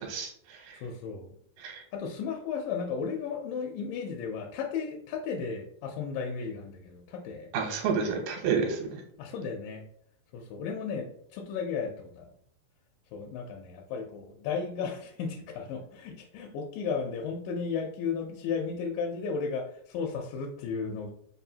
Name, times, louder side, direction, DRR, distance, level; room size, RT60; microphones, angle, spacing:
voice 1, 0.0-0.8 1.6-1.8 7.5-9.0, right 5 dB, 75° right, 1 dB, 2.4 m, -30 dB
voice 2, 0.7-1.3 1.9-7.5 9.2-9.8 10.3-12.3 13.1-21.1, left 5 dB, 80° left, 1 dB, 2.1 m, -34 dB
5.4 x 2.3 x 2.7 m, 0.65 s
omnidirectional pair, 4.1 m